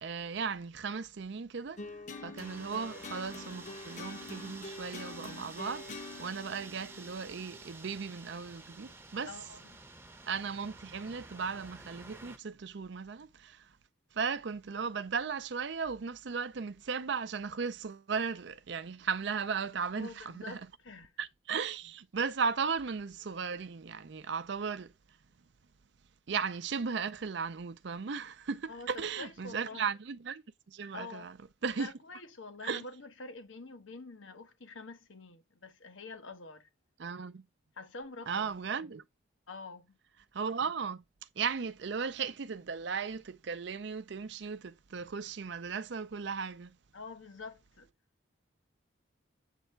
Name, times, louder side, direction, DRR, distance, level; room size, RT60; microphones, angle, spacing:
voice 1, 0.0-1.8 2.2-9.3 10.3-13.7 14.1-20.6 21.2-24.9 26.3-31.4 31.6-31.9 32.6-32.8 37.0-37.4 38.3-39.0 40.3-41.0 41.4-46.8, right 5 dB, 65° right, 0.5 m, -36 dB
sound 1, 1.8-8.2, left 3 dB, 35° left, 0.8 m, -46 dB
sound 2, 2.4-12.4, right 3 dB, 15° right, 0.7 m, -51 dB
voice 2, 9.3-9.8 19.9-21.1 28.7-29.8 30.9-31.3 31.7-36.7 37.8-38.5 39.5-40.0 46.9-47.9, left 3 dB, 80° left, 1.2 m, -46 dB
8.2 x 3.4 x 4.4 m
head